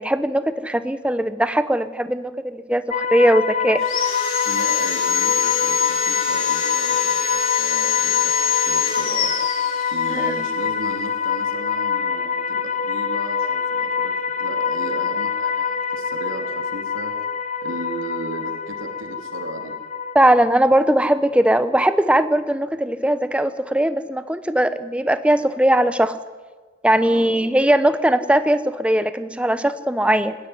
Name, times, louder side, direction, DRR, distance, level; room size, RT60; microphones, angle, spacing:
voice 1, 0.0-3.8 10.1-10.5 20.1-26.1 26.8-30.4, right 1 dB, 5° right, 12 dB, 0.8 m, -19 dB
sound 1, 2.9-20.1, left 6 dB, 35° left, 0.8 m, -25 dB
Sawing, 3.8-10.3, left 8 dB, 85° left, 4.5 m, -24 dB
voice 2, 4.4-9.4 9.9-17.1 17.6-19.8 27.0-27.4, right 2 dB, 85° right, 4 dB, 2.9 m, -35 dB
20.0 x 16.0 x 9.8 m, 1.4 s
head